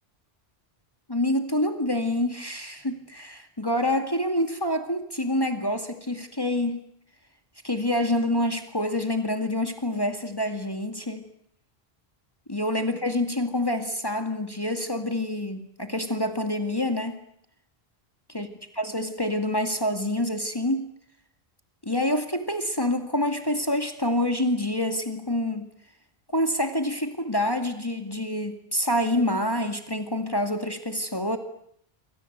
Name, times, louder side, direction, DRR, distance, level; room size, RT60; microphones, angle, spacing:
voice 1, 1.1-6.9 7.6-11.3 12.5-17.2 18.3-18.5 18.8-20.9 21.8-25.7 26.3-31.4, left 1 dB, 20° left, 6 dB, 2.2 m, -27 dB
28.0 x 25.5 x 8.1 m, 0.69 s
omnidirectional pair, 1.1 m